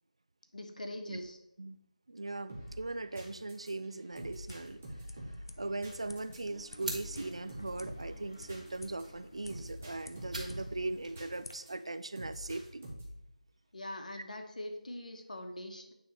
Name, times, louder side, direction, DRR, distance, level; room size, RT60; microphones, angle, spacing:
voice 1, 0.5-1.4 13.7-15.9, left 1 dB, 65° left, 5 dB, 1.2 m, -42 dB
voice 2, 2.1-4.8 5.6-12.9, right 2 dB, 45° right, 13 dB, 0.3 m, -39 dB
sound 1, 2.5-11.7 12.2-13.3, right 1 dB, 15° right, 0.8 m, -47 dB
sound 2, 4.1-11.5, left 2 dB, 35° left, 0.5 m, -53 dB
sound 3, 6.1-12.5, right 2 dB, 60° right, 2.2 m, -48 dB
8.7 x 3.5 x 4.3 m, 0.84 s
figure-of-eight pair, 180°, 4 cm